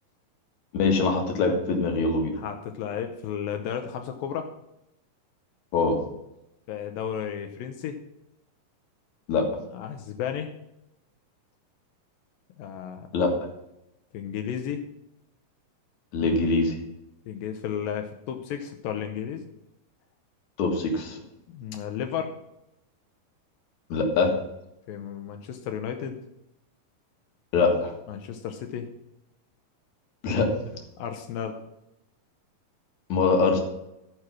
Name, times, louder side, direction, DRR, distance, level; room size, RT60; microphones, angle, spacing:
voice 1, 0.7-2.3 5.7-6.0 9.3-9.5 13.1-13.3 16.1-16.8 20.6-21.2 23.9-24.3 27.5-27.9 30.2-30.5 33.1-33.6, left 3 dB, 60° left, 3 dB, 2.8 m, -23 dB
voice 2, 2.3-4.5 6.7-8.0 9.7-10.5 12.6-13.1 14.1-14.9 17.3-19.4 21.5-22.3 24.9-26.2 28.1-28.9 31.0-31.6, left 8 dB, 85° left, 5 dB, 2.6 m, -33 dB
14.5 x 4.9 x 5.9 m, 0.88 s
omnidirectional pair, 4.0 m